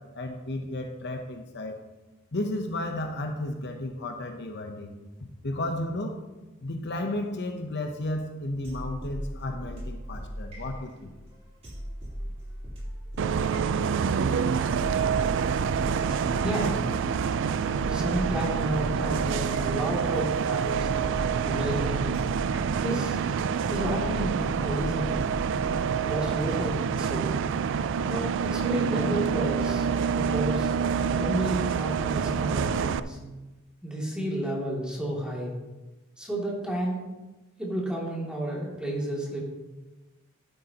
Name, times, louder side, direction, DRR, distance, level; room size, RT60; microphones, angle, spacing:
voice 1, 0.0-1.8 2.3-4.9 5.4-6.1 6.6-11.1, left 1 dB, 55° left, 4 dB, 0.8 m, -33 dB
sound 1, 8.6-26.4, equal, 30° right, 3.6 m, -39 dB
Bus, 13.2-33.0, right 6 dB, 60° right, 0.4 m, -27 dB
voice 2, 16.4-16.8 17.8-20.9 21.4-22.1 22.8-23.4 23.7-25.2 26.1-27.3 28.0-30.7 31.1-33.2 33.8-35.5 36.2-37.1 37.6-39.4, right 1 dB, 5° right, -4 dB, 2.5 m, -31 dB
11.5 x 9.4 x 2.9 m, 1.1 s
head